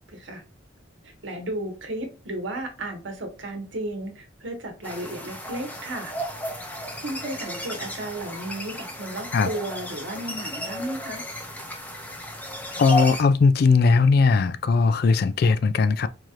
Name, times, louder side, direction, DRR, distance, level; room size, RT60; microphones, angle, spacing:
voice 1, 0.1-0.4 1.0-6.1 7.0-11.2, right 1 dB, 70° right, 1.1 m, -34 dB
sound 1, 4.8-13.2, left 1 dB, 10° left, 0.6 m, -34 dB
voice 2, 12.8-16.1, left 4 dB, 50° left, 0.3 m, -19 dB
4.6 x 2.8 x 2.4 m
head